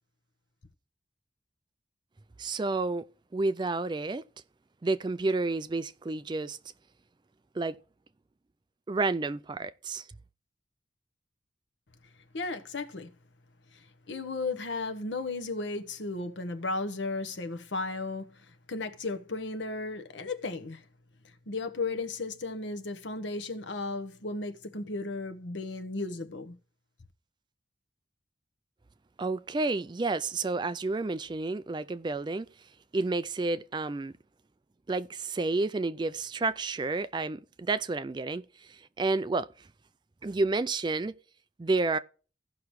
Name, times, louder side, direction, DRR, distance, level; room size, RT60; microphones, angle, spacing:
voice 1, 2.4-3.0 3.3-4.2 4.8-6.6 7.6-7.7 8.9-10.0 29.2-32.5 32.9-34.1 34.9-38.4 38.7-39.5 40.2-41.1 41.6-42.0, right 3 dB, 25° right, 0.3 m, -30 dB
voice 2, 12.3-13.1 13.7-20.8 21.5-26.6, left 3 dB, 75° left, 1.0 m, -35 dB
16.5 x 5.8 x 3.1 m
head